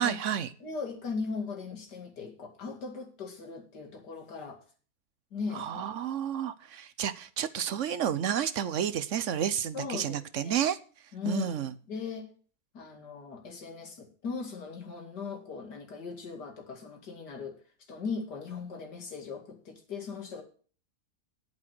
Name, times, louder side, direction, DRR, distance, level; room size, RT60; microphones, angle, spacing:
voice 1, 0.0-0.5 5.5-10.8 11.3-11.7, right 9 dB, 60° right, 14 dB, 0.9 m, -30 dB
voice 2, 0.6-4.6 5.3-5.9 9.7-10.7 11.1-12.3 12.7-17.6 17.9-20.4, left 4 dB, 80° left, 3 dB, 2.8 m, -38 dB
8.9 x 8.7 x 6.0 m, 0.39 s
omnidirectional pair, 1.8 m